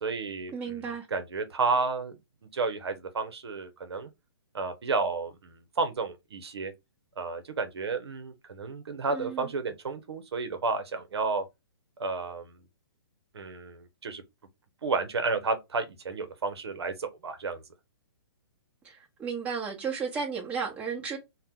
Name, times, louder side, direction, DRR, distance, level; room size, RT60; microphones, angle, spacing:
voice 1, 0.0-2.1 2.5-4.1 4.5-6.7 7.2-11.4 12.0-12.5 13.3-14.2 14.8-17.6, right 4 dB, 80° right, 0.7 m, -31 dB
voice 2, 0.5-1.0 9.1-9.5 19.2-21.2, right 6 dB, 10° right, 0.9 m, -33 dB
2.8 x 2.1 x 3.5 m
hypercardioid pair, 140°, 13 cm